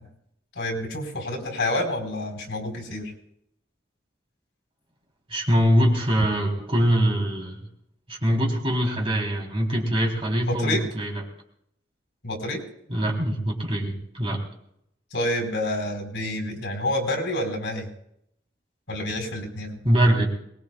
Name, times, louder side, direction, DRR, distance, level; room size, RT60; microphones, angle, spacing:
voice 1, 0.5-3.1 10.4-10.8 12.2-12.6 15.1-17.9 18.9-19.8, left 1 dB, 80° left, 3 dB, 4.1 m, -28 dB
voice 2, 5.3-7.6 8.1-11.2 12.9-14.4 19.8-20.2, equal, 30° right, -1 dB, 3.4 m, -23 dB
23.5 x 20.0 x 2.3 m, 0.74 s
head